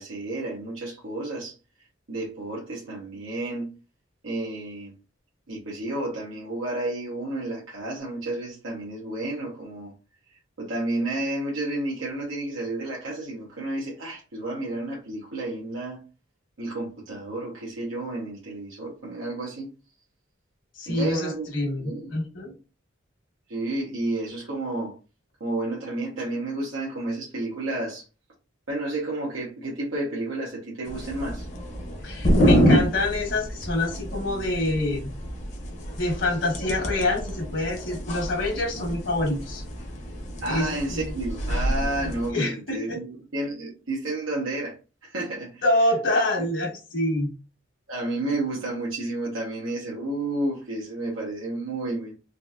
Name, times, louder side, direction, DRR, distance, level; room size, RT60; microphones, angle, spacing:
voice 1, 0.0-1.6 2.1-3.7 4.2-4.9 5.5-9.9 10.6-16.0 16.6-19.7 20.9-21.5 21.8-22.1 23.5-24.9 25.4-28.1 28.7-31.5 40.4-44.8 45.0-45.6 47.9-52.1, right 2 dB, 85° right, 1.1 m, -31 dB
voice 2, 20.8-22.5 32.0-35.1 36.0-39.6 40.5-41.0 42.0-43.0 45.6-47.3, left 1 dB, 65° left, 1.4 m, -26 dB
sound 1, 30.9-42.3, equal, 35° left, 0.8 m, -27 dB
3.8 x 2.7 x 2.4 m
head